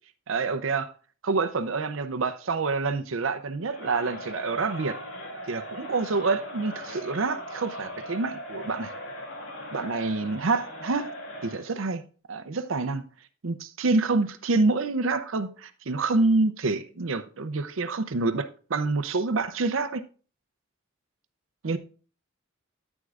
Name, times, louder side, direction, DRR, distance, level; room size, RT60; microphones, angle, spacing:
voice 1, 0.3-0.9 1.2-5.0 5.5-8.9 9.7-11.1 11.4-12.0 12.3-13.0 13.4-20.0 21.6-21.8, right 3 dB, 80° right, 0.6 m, -27 dB
Crowd, 3.6-11.7, equal, 80° left, 2.7 m, -39 dB
9.6 x 9.0 x 2.4 m
head